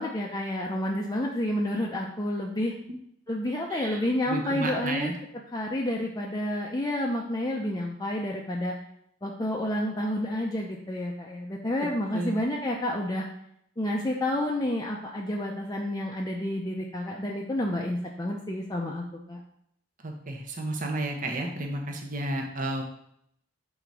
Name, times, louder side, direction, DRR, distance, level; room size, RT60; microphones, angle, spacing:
voice 1, 0.0-2.7 3.3-5.1 5.5-8.7 9.2-13.3 13.8-19.4, left 1 dB, 20° left, -1 dB, 0.6 m, -30 dB
voice 2, 3.7-5.1 12.1-12.4 20.0-22.8, right 2 dB, 45° right, 2 dB, 0.9 m, -32 dB
5.8 x 4.0 x 4.7 m, 0.72 s
head